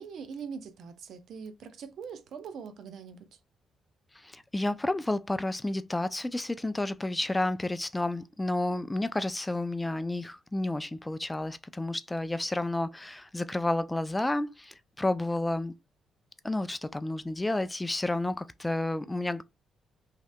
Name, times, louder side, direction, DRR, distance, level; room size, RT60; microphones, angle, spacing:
voice 1, 0.0-3.4, right 6 dB, 70° right, 0.5 m, -42 dB
voice 2, 4.1-15.7 16.4-19.4, left 2 dB, 15° left, 0.3 m, -31 dB
3.1 x 2.8 x 2.2 m
supercardioid pair, 60°, 0 cm